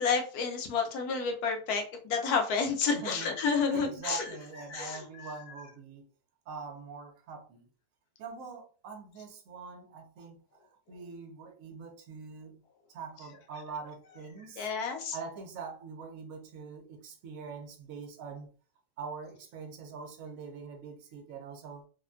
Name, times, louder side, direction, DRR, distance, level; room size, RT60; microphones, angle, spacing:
voice 1, 0.0-4.2 4.7-5.3 14.6-15.2, left 5 dB, 80° left, 1.2 m, -30 dB
voice 2, 2.9-3.4 3.7-6.1 6.5-7.7 8.2-10.4 10.9-12.6 12.9-14.7 15.1-18.5 19.0-21.9, right 5 dB, 70° right, 1.0 m, -43 dB
3.3 x 2.2 x 2.5 m
omnidirectional pair, 1.6 m